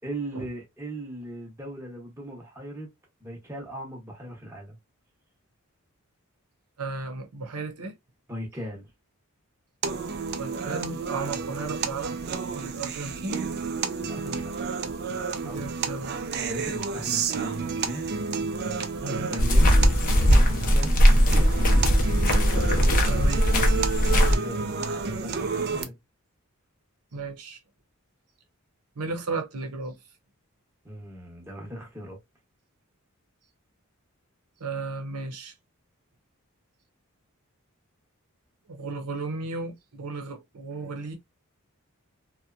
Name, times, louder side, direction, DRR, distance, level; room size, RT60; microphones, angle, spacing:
voice 1, 0.0-2.9 3.2-4.8 8.3-8.9 14.0-14.5 15.4-15.7 16.4-18.0 19.0-19.7 20.2-20.9 21.3-21.8 24.0-26.0 30.8-32.2, equal, 10° right, 0.8 m, -38 dB
voice 2, 6.8-7.9 10.4-12.2 12.5-13.4 15.4-16.2 19.0-19.3 23.0-23.5 27.1-27.6 29.0-30.0 34.6-35.5 38.7-41.2, right 3 dB, 85° right, 0.7 m, -34 dB
sound 1, 9.8-25.8, right 5 dB, 45° right, 0.4 m, -31 dB
sound 2, 19.4-24.4, equal, 40° left, 0.5 m, -19 dB
2.7 x 2.2 x 2.4 m
head